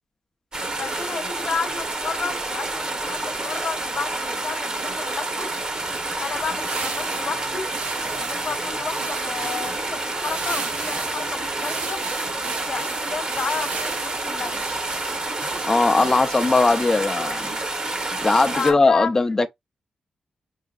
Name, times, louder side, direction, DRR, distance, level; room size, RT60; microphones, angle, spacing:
sound 1, 0.5-18.7, right 2 dB, 40° right, 1.0 m, -28 dB
voice 1, 0.8-5.5 6.2-7.7 8.2-12.0 12.4-14.6 18.5-19.1, left 5 dB, 55° left, 0.7 m, -32 dB
sound 2, 6.1-17.0, right 5 dB, 75° right, 0.8 m, -36 dB
voice 2, 15.7-17.5 18.2-19.5, left 3 dB, 20° left, 0.5 m, -19 dB
5.6 x 2.5 x 2.4 m
cardioid pair, 95°, 2 cm